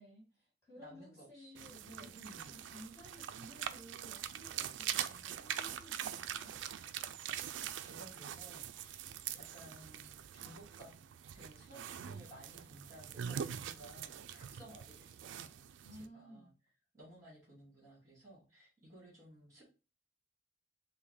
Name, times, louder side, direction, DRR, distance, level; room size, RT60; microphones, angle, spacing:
voice 1, 0.0-6.6 15.8-16.5, equal, 15° left, -8 dB, 2.1 m, -56 dB
voice 2, 0.8-1.7 2.0-2.6 7.5-9.0 9.3-10.9 11.3-15.7 16.0-16.5 16.9-19.6, right 1 dB, 15° right, -6 dB, 2.3 m, -57 dB
sound 1, 1.6-16.1, right 9 dB, 90° right, 0.3 m, -43 dB
5.4 x 2.2 x 3.2 m, 0.31 s
head